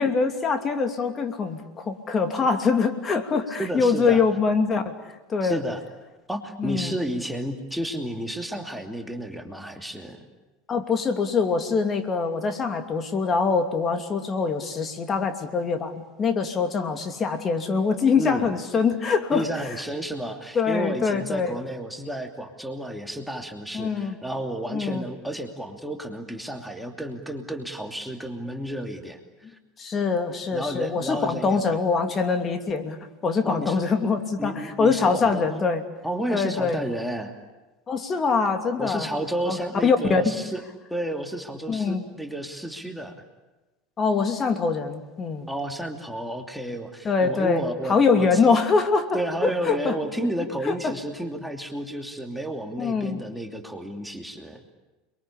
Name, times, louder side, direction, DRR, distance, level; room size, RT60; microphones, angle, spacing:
voice 1, 0.0-4.9 5.3-5.6 6.6-7.0 10.7-19.5 20.5-21.6 23.7-24.2 24.7-25.0 29.8-35.8 36.3-36.8 37.9-39.1 39.5-40.4 41.7-42.0 44.0-45.5 47.0-49.1 49.4-50.0 50.6-50.9 52.8-53.2, left 5 dB, 25° left, 7 dB, 2.7 m, -24 dB
voice 2, 3.6-4.2 5.4-5.8 6.3-10.3 18.2-18.5 19.3-29.6 30.5-31.6 33.4-33.8 34.4-35.6 36.0-37.3 38.8-40.6 40.9-43.2 45.5-48.4 49.1-54.6, right 1 dB, ahead, 3 dB, 2.8 m, -32 dB
29.5 x 23.0 x 8.6 m, 1.1 s
figure-of-eight pair, 75°, 0 cm